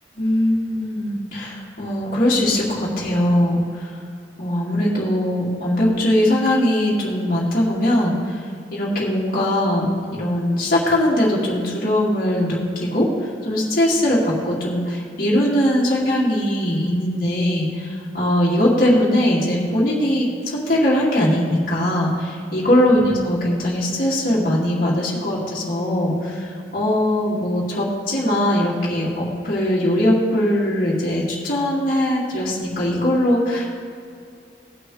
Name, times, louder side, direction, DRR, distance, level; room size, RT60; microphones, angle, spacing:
voice 1, 0.2-4.0 4.4-8.4 8.7-33.7, left 1 dB, 50° left, -6 dB, 2.4 m, -20 dB
18.0 x 6.2 x 3.3 m, 2.4 s
head